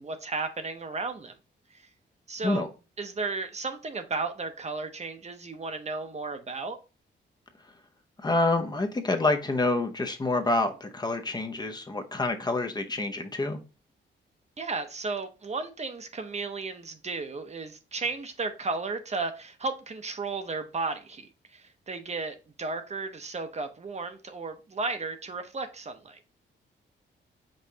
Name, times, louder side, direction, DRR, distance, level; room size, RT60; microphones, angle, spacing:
voice 1, 0.0-1.3 1.7-1.8 2.3-2.7 3.0-6.8 14.6-26.2, right 3 dB, 35° right, 0.6 m, -34 dB
voice 2, 8.2-13.6, left 2 dB, 20° left, 0.6 m, -27 dB
5.4 x 3.6 x 2.8 m
cardioid pair, 95°, 19 cm